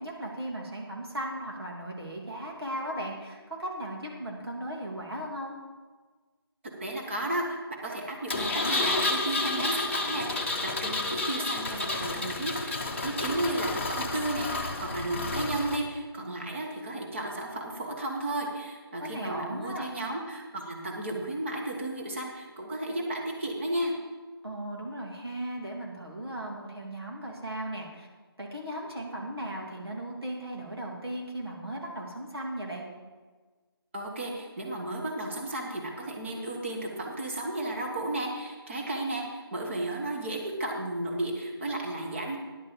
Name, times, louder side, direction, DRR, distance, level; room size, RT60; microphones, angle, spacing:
voice 1, 0.0-5.6 19.0-19.9 24.4-28.1 28.4-32.8, right 1 dB, 70° right, -2 dB, 2.9 m, -37 dB
voice 2, 6.8-23.9 33.9-42.4, right 1 dB, 30° right, 0 dB, 1.7 m, -33 dB
Engine, 8.3-15.8, left 2 dB, 30° left, 0.8 m, -31 dB
10.5 x 6.5 x 6.9 m, 1.4 s
figure-of-eight pair, 160°, 13 cm